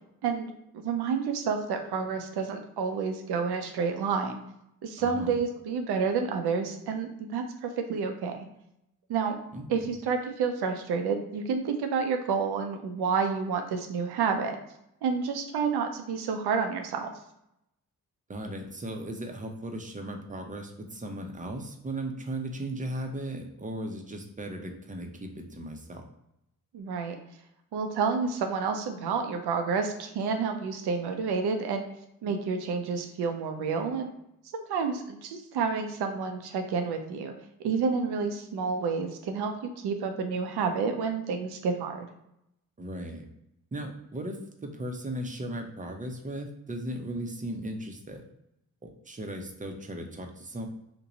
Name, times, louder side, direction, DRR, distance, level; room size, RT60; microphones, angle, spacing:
voice 1, 0.7-4.4 4.8-8.5 9.1-9.4 9.7-14.6 15.0-17.1 26.7-27.2 27.7-31.8 32.2-34.1 34.5-37.3 37.6-42.1, right 5 dB, 80° right, 5 dB, 0.6 m, -29 dB
voice 2, 5.0-5.4 9.5-9.7 18.3-26.0 42.8-43.3 43.7-48.2 48.8-50.7, right 1 dB, 20° right, 4 dB, 0.7 m, -37 dB
2.9 x 2.2 x 3.8 m, 0.81 s
supercardioid pair, 50°, 38 cm